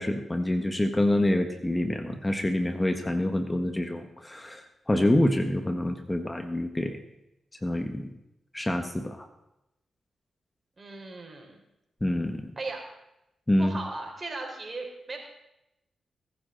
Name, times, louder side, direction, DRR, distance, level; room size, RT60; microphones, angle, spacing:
voice 1, 0.0-7.0 7.6-8.1 8.5-9.3 12.0-12.5 13.5-13.8, left 1 dB, 20° left, 6 dB, 1.4 m, -26 dB
voice 2, 10.8-11.6 12.6-12.8 13.6-15.2, right 3 dB, 40° right, 1 dB, 4.5 m, -37 dB
20.0 x 10.0 x 4.0 m, 0.88 s
supercardioid pair, 45°, 0 cm